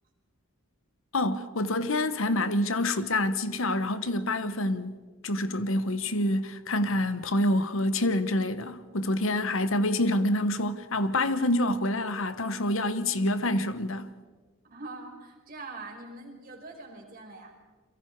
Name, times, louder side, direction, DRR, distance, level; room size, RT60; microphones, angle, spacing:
voice 1, 1.1-14.1, left 1 dB, 70° left, 1.2 m, -27 dB
voice 2, 14.6-17.6, right 3 dB, 40° right, 5.1 m, -43 dB
30.0 x 23.0 x 4.7 m
head